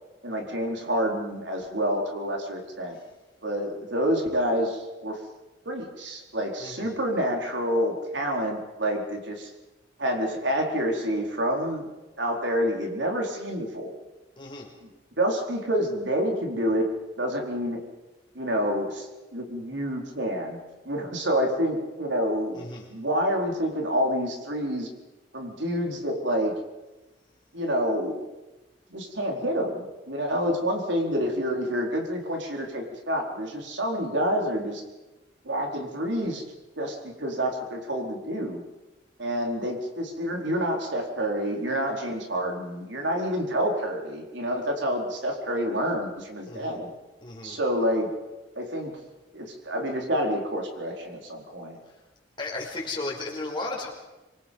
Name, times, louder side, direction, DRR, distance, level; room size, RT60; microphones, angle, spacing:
voice 1, 0.2-3.0 3.4-5.2 5.6-9.5 10.0-11.9 12.2-13.9 14.8-14.9 15.2-16.9 17.2-17.8 18.3-20.6 20.8-24.9 25.3-26.5 27.5-28.3 28.9-34.8 35.4-36.4 36.8-38.6 39.2-46.9 47.4-48.1 48.5-48.9 49.3-51.8, equal, 70° right, 1 dB, 4.5 m, -28 dB
voice 2, 6.6-6.9 14.4-14.7 22.5-22.9 46.5-46.8 47.2-47.6 52.4-53.9, left 2 dB, 25° left, -1 dB, 5.2 m, -35 dB
26.5 x 23.0 x 5.5 m, 1.1 s
head